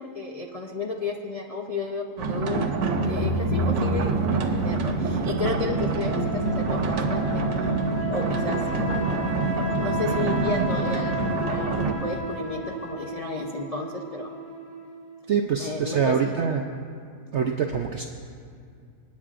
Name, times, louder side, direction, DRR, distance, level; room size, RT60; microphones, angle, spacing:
voice 1, 0.0-2.6 3.0-7.7 8.1-8.6 9.7-11.2 11.5-14.3 15.6-16.6, left 3 dB, 70° left, 1 dB, 0.3 m, -33 dB
sound 1, 2.2-11.9, right 3 dB, 90° right, 1.6 m, -26 dB
sound 2, 2.8-5.7, left 1 dB, 30° left, 3.8 m, -31 dB
sound 3, 5.4-15.1, left 1 dB, 10° left, 1.7 m, -34 dB
voice 2, 15.3-16.6 17.3-18.0, right 6 dB, 70° right, 4 dB, 0.6 m, -24 dB
26.5 x 9.5 x 2.5 m, 2.3 s
omnidirectional pair, 1.8 m